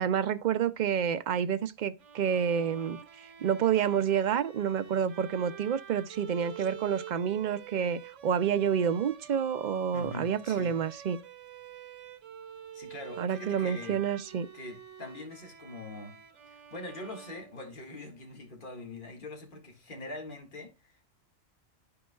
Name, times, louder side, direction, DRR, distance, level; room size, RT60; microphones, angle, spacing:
voice 1, 0.0-11.2 13.2-14.5, right 8 dB, 55° right, 0.5 m, -29 dB
Bowed string instrument, 2.0-18.1, right 9 dB, 85° right, 1.2 m, -48 dB
voice 2, 9.9-10.8 12.7-14.0 14.5-21.0, left 2 dB, 45° left, 1.8 m, -43 dB
11.5 x 4.6 x 2.2 m
omnidirectional pair, 1.2 m